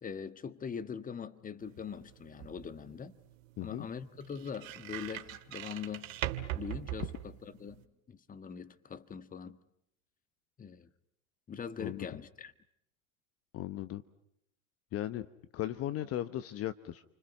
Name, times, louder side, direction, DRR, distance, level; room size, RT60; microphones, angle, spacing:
voice 1, 0.0-3.1 3.6-6.1 6.5-9.6 10.6-10.9 11.5-12.5, left 6 dB, 20° left, 1.5 m, -42 dB
sound 1, 1.6-7.8, right 13 dB, 70° right, 2.4 m, -42 dB
voice 2, 3.6-3.9 11.8-12.1 13.5-14.0 14.9-15.3 15.5-17.0, left 13 dB, 35° left, 1.0 m, -37 dB
29.5 x 25.5 x 6.1 m
hypercardioid pair, 95°, 41 cm